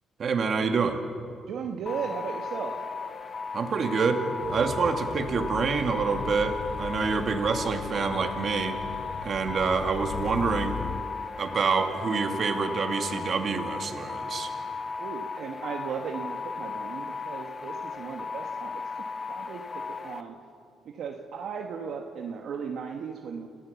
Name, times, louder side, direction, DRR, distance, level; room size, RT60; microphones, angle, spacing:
voice 1, 0.2-1.0 3.5-4.2 4.5-8.8 9.2-10.8 11.4-14.5, right 5 dB, 50° right, 5 dB, 2.2 m, -27 dB
voice 2, 1.5-2.8 7.0-7.2 15.0-20.3 20.8-23.5, right 6 dB, 70° right, 2 dB, 1.4 m, -36 dB
sound 1, 1.9-20.2, left 4 dB, 35° left, 1.1 m, -36 dB
sound 2, 4.4-11.0, left 7 dB, 65° left, 1.0 m, -39 dB
28.5 x 14.5 x 7.1 m, 2.5 s
cardioid pair, 90°, 0 cm